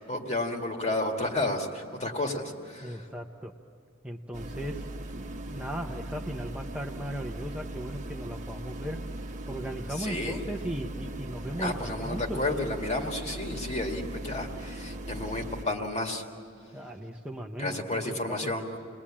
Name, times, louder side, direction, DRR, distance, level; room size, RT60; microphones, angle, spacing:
voice 1, 0.0-3.0 10.0-10.4 11.6-16.2 17.6-18.7, left 2 dB, 30° left, 3 dB, 2.1 m, -31 dB
voice 2, 2.8-3.5 4.0-4.8 5.1-9.0 9.5-12.4 16.7-18.5, right 1 dB, 5° right, 1 dB, 0.8 m, -37 dB
sound 1, 4.3-15.6, right 1 dB, 35° right, 1.2 m, -39 dB
28.5 x 20.5 x 8.7 m, 2.3 s
head